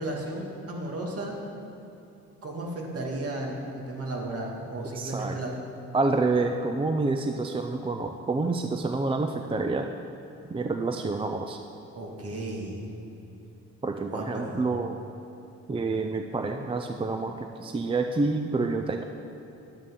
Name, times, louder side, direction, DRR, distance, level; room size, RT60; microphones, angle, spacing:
voice 1, 0.0-1.4 2.4-5.5 11.9-12.9 14.1-14.7, right 1 dB, 50° right, -1 dB, 2.0 m, -34 dB
voice 2, 4.9-5.4 5.9-9.9 10.4-11.6 13.8-15.0 15.7-19.0, right 3 dB, 20° right, 5 dB, 0.4 m, -28 dB
10.5 x 9.0 x 3.7 m, 2.9 s
cardioid pair, 90°, 30 cm